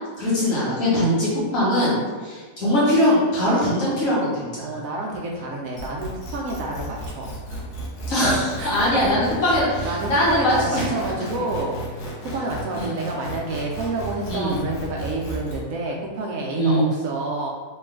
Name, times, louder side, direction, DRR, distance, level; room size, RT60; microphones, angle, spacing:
voice 1, 0.2-2.0 2.2-4.6 8.1-10.8 12.8-13.0 14.3-14.6 16.6-16.8, equal, 60° left, -7 dB, 1.6 m, -21 dB
voice 2, 4.6-7.6 8.6-9.5 9.8-17.5, right 2 dB, 70° right, -1 dB, 0.9 m, -29 dB
sound 1, 5.8-15.6, right 1 dB, 80° left, 1.4 m, -34 dB
3.1 x 3.0 x 3.5 m, 1.5 s
omnidirectional pair, 1.7 m